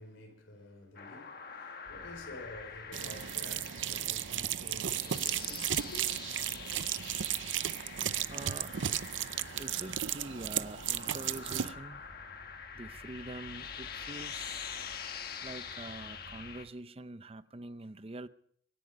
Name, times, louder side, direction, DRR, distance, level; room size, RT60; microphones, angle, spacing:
voice 1, 0.0-6.1, left 2 dB, 85° left, 4.4 m, -50 dB
sound 1, 1.0-16.7, left 7 dB, 50° left, 1.5 m, -45 dB
sound 2, 1.8-16.6, right 1 dB, 50° right, 4.4 m, -56 dB
sound 3, 2.9-11.7, right 11 dB, 80° right, 0.6 m, -34 dB
voice 2, 8.3-9.0 9.6-12.0 12.7-14.7 15.4-18.3, right 2 dB, 30° right, 0.6 m, -45 dB
25.0 x 10.5 x 5.1 m
head